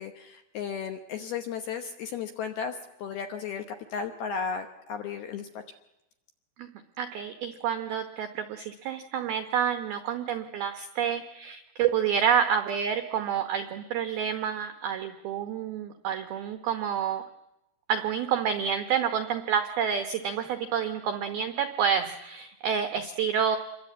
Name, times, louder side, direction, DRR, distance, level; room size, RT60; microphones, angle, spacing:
voice 1, 0.0-3.6 3.9-5.6, left 6 dB, 80° left, 7 dB, 2.2 m, -34 dB
voice 2, 7.0-17.3 17.9-23.6, right 8 dB, 85° right, 8 dB, 2.1 m, -28 dB
27.5 x 22.5 x 8.5 m, 0.91 s
omnidirectional pair, 6.0 m